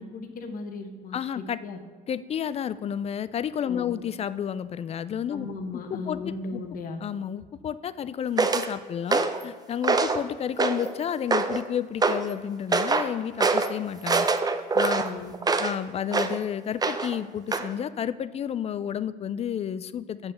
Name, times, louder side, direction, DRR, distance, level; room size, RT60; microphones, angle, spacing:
voice 1, 0.0-1.8 3.6-4.0 5.3-7.0 15.0-15.3, left 3 dB, 55° left, 6 dB, 1.1 m, -37 dB
voice 2, 1.1-1.6 2.1-6.6 7.0-14.3 14.7-15.0 15.6-20.3, left 9 dB, 40° left, 16 dB, 0.4 m, -31 dB
sound 1, 8.4-8.7 9.1-9.4 9.8-10.2 10.6-10.9 11.3-11.6 12.0-12.2 12.7-13.1 13.4-13.7 14.1-15.8 16.1-16.4 16.8-17.2 17.5-17.7, right 4 dB, 25° right, 0.6 m, -24 dB
7.3 x 5.5 x 7.0 m, 1.5 s
cardioid pair, 110°, 17 cm